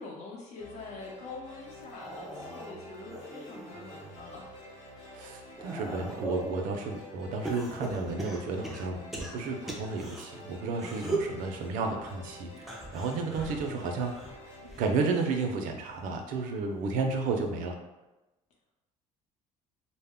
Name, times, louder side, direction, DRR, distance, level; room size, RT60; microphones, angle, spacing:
voice 1, 0.0-4.5, left 3 dB, 60° left, -2 dB, 0.7 m, -44 dB
sound 1, 0.5-15.8, left 1 dB, 85° left, 1.1 m, -48 dB
sound 2, 1.8-4.1 4.6-6.6 7.4-10.2 10.7-11.4 12.6-15.4 15.8-16.2 17.4-17.5, right 2 dB, ahead, 0.4 m, -39 dB
voice 2, 5.1-14.1 14.8-17.8, right 4 dB, 80° right, 4 dB, 0.5 m, -32 dB
2.1 x 2.0 x 3.5 m, 1.0 s
cardioid pair, 130°, 13 cm